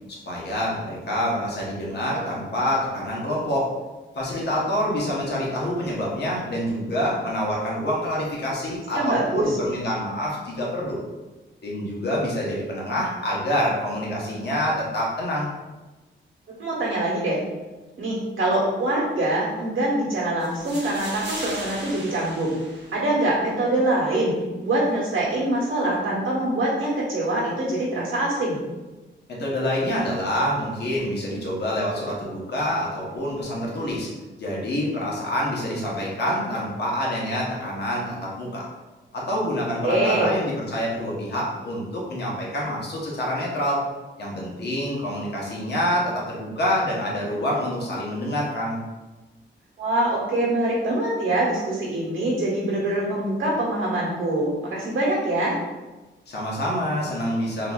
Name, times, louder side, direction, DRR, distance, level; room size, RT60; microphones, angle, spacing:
voice 1, 0.1-3.7 4.1-11.0 11.6-15.5 29.3-34.1 34.4-38.7 39.1-43.8 44.2-48.8 56.3-57.7, equal, 55° left, -4 dB, 0.9 m, -26 dB
voice 2, 8.9-9.4 16.6-17.4 18.0-22.6 22.9-24.4 24.6-28.6 39.8-40.4 49.8-55.6, right 1 dB, 90° right, -5 dB, 1.2 m, -24 dB
sound 1, 20.4-23.4, right 1 dB, 60° right, 0.9 m, -37 dB
3.7 x 2.8 x 2.3 m, 1.2 s
wide cardioid pair, 180°, 20 cm